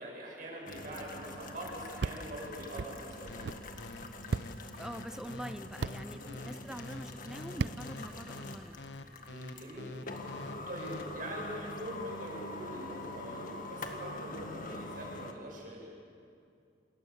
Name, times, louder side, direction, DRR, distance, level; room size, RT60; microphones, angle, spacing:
voice 1, 0.0-3.5 6.1-6.4 9.2-10.0 10.7-15.9, right 1 dB, 55° right, -2 dB, 8.0 m, -43 dB
sound 1, 0.7-15.3, left 2 dB, 50° left, 1.9 m, -44 dB
sound 2, 2.0-2.2 2.8-2.9 3.4-3.6 4.3-4.5 5.8-6.0 7.6-7.8, right 4 dB, 75° right, 0.5 m, -33 dB
sound 3, 3.3-11.0, left 2 dB, 90° left, 1.1 m, -46 dB
voice 2, 4.8-8.9, equal, 5° right, 12 dB, 0.5 m, -45 dB
27.5 x 20.5 x 7.3 m, 2.4 s
head